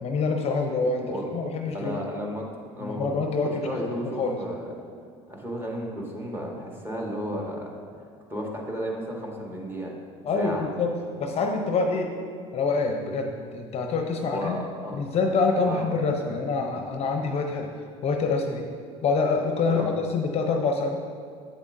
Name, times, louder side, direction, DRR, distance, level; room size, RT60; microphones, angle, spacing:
voice 1, 0.0-2.0 2.8-3.8 4.2-4.4 10.2-10.9 11.2-12.1 12.5-14.6 14.9-17.7 18.0-18.7 19.0-21.0, left 4 dB, 40° left, 3 dB, 0.7 m, -26 dB
voice 2, 1.7-2.5 2.7-4.8 5.3-7.8 8.3-9.9 10.3-10.7 14.3-15.0 15.6-16.3 19.6-19.9, equal, 15° right, -2 dB, 1.4 m, -33 dB
7.7 x 6.9 x 2.6 m, 2.2 s
supercardioid pair, 85°, 16 cm